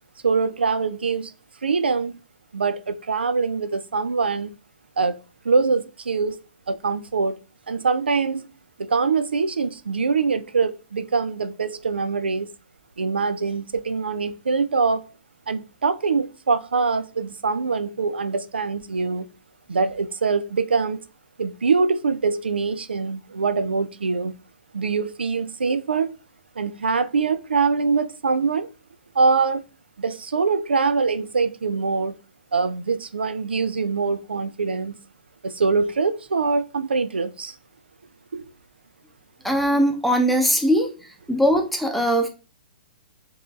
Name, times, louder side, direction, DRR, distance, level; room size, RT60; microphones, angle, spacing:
voice 1, 0.2-1.3 1.6-2.2 2.5-4.5 5.0-5.2 5.4-6.4 6.7-7.4 7.7-8.5 8.8-12.5 13.0-15.0 15.5-19.3 19.7-21.0 21.4-24.4 24.7-26.2 26.6-28.7 29.2-29.6 30.0-32.1 32.5-35.0 35.4-37.5 38.3-38.4, right 4 dB, 85° right, 0.3 m, -23 dB
voice 2, 39.4-40.9 41.3-42.3, equal, ahead, 0.7 m, -20 dB
4.0 x 2.4 x 2.4 m
hypercardioid pair, 120°, 5 cm